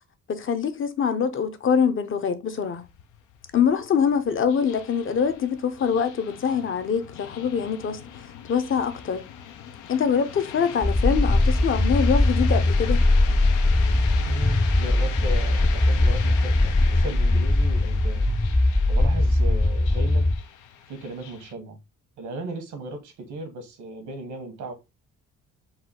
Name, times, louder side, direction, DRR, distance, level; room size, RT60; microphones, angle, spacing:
voice 1, 0.3-2.8 3.5-8.0 8.5-9.3 9.9-13.0, left 7 dB, 45° left, 0.7 m, -24 dB
sound 1, 2.6-21.5, left 9 dB, 85° left, 0.6 m, -40 dB
sound 2, 10.8-20.4, left 2 dB, 10° left, 0.4 m, -20 dB
voice 2, 14.3-18.3 18.9-20.3 20.9-21.8 22.2-24.7, right 2 dB, 75° right, 1.4 m, -36 dB
4.0 x 2.3 x 4.2 m
cardioid pair, 90°, 30 cm